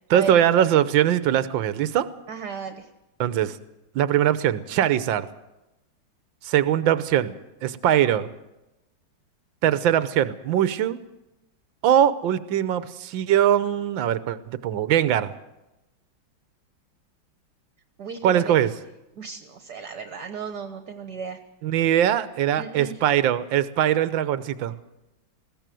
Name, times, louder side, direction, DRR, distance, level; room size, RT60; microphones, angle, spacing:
voice 1, 0.1-2.1 3.2-3.6 3.9-5.3 6.4-7.4 7.6-8.3 9.6-11.0 11.8-15.3 18.2-18.7 21.6-24.8, right 10 dB, 75° right, 13 dB, 1.6 m, -21 dB
voice 2, 2.3-2.9 18.0-18.5 19.1-21.4 22.6-23.0, right 6 dB, 55° right, 7 dB, 1.7 m, -34 dB
21.0 x 16.5 x 7.7 m, 0.96 s
omnidirectional pair, 2.2 m